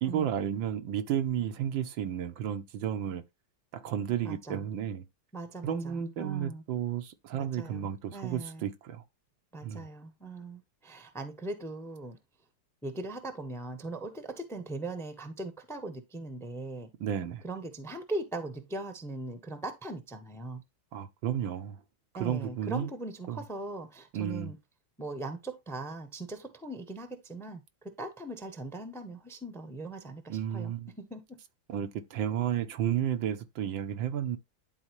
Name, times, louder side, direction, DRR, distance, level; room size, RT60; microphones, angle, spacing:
voice 1, 0.0-3.2 3.7-5.0 5.6-9.0 9.6-9.9 17.0-17.4 20.9-21.8 22.2-22.9 23.3-23.4 24.1-24.5 30.3-30.9 31.7-34.4, right 9 dB, 90° right, 1.7 m, -32 dB
voice 2, 4.2-4.6 5.3-6.6 7.3-8.7 9.5-12.2 12.8-16.9 17.4-20.6 22.1-24.6 25.0-27.6 27.8-31.4, right 2 dB, ahead, 0.7 m, -40 dB
11.0 x 4.2 x 3.0 m
omnidirectional pair, 2.0 m